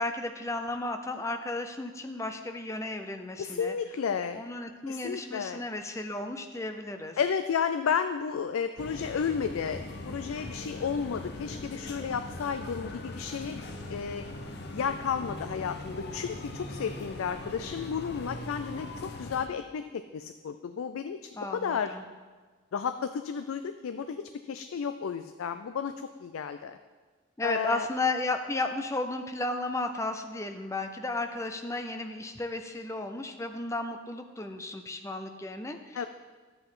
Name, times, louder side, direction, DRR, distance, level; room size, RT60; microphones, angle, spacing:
voice 1, 0.0-3.7 4.4-7.2 21.3-22.0 27.4-36.1, left 2 dB, 15° left, 6 dB, 0.5 m, -34 dB
voice 2, 3.4-4.4 4.9-5.6 7.2-13.6 13.9-14.2 14.7-22.0 22.7-26.8 27.4-27.9 35.9-36.1, left 6 dB, 80° left, 9 dB, 0.4 m, -32 dB
sound 1, 8.8-19.5, left 2 dB, 50° left, 0.8 m, -40 dB
11.5 x 7.7 x 3.8 m, 1.4 s
head